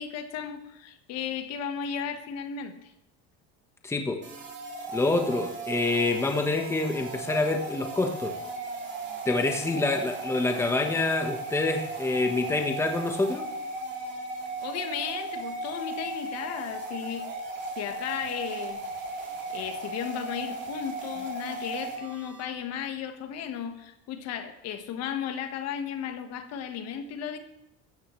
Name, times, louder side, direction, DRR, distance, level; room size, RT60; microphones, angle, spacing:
voice 1, 0.0-2.9 14.6-17.4 17.8-18.8 19.5-27.4, left 8 dB, 60° left, 7 dB, 1.5 m, -35 dB
voice 2, 3.8-4.2 4.9-8.3 9.2-13.5, left 2 dB, 10° left, 4 dB, 1.2 m, -26 dB
sound 1, 4.2-22.4, right 2 dB, 40° right, 3.4 m, -36 dB
16.5 x 13.5 x 3.2 m, 0.82 s
cardioid pair, 140°, 29 cm